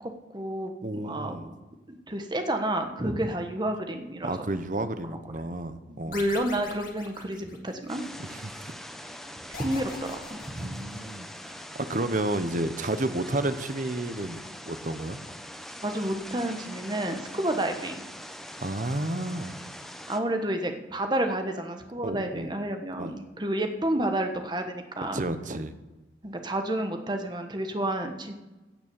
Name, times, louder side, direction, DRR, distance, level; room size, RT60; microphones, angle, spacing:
voice 1, 0.0-1.4 1.9-4.4 5.9-8.0 9.6-10.8 13.1-13.2 15.8-18.0 20.1-25.2 26.2-28.3, right 1 dB, 25° right, 5 dB, 1.2 m, -30 dB
voice 2, 0.8-1.5 3.0-3.3 4.2-6.2 8.2-8.7 10.6-14.4 14.7-15.2 18.6-19.6 22.0-22.5 23.0-23.1 25.1-25.7, right 2 dB, 45° right, 11 dB, 0.8 m, -31 dB
sound 1, 6.1-8.1 9.5-11.3, left 4 dB, 50° left, 2.1 m, -43 dB
sound 2, 7.9-20.2, equal, ahead, 0.7 m, -43 dB
16.0 x 6.1 x 7.0 m, 1.1 s
head